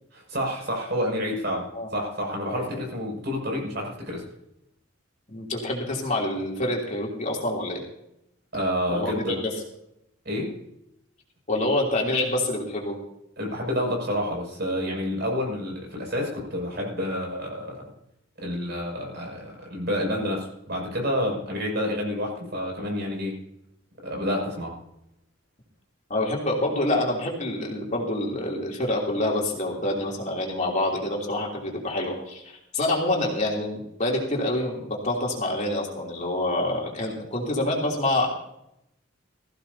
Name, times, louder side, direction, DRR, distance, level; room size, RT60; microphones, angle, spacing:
voice 1, 0.1-1.7 1.9-4.3 8.5-9.4 10.2-10.6 13.4-17.8 18.4-23.3 24.0-24.7, equal, 55° right, -1 dB, 6.3 m, -29 dB
voice 2, 5.3-7.8 8.9-9.5 11.5-13.0 26.1-38.3, left 1 dB, 35° left, -2 dB, 3.1 m, -27 dB
20.0 x 15.0 x 2.8 m, 0.81 s
head